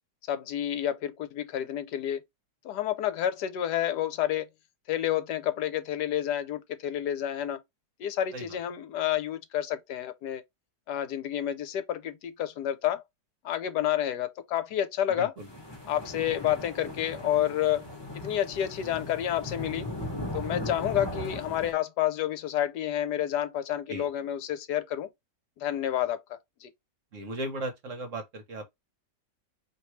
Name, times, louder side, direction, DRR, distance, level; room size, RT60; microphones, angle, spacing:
voice 1, 0.3-2.2 2.6-4.5 4.9-7.6 8.0-10.4 10.9-13.0 13.4-15.3 15.9-17.8 18.1-19.9 20.3-25.1 25.6-26.2 26.6-26.7, left 11 dB, 75° left, 1.2 m, -29 dB
voice 2, 15.1-15.5 23.9-24.1 27.1-28.7, right 1 dB, 55° right, 1.1 m, -37 dB
sound 1, 15.4-21.7, left 1 dB, 15° left, 1.4 m, -38 dB
4.6 x 2.9 x 3.0 m
omnidirectional pair, 1.8 m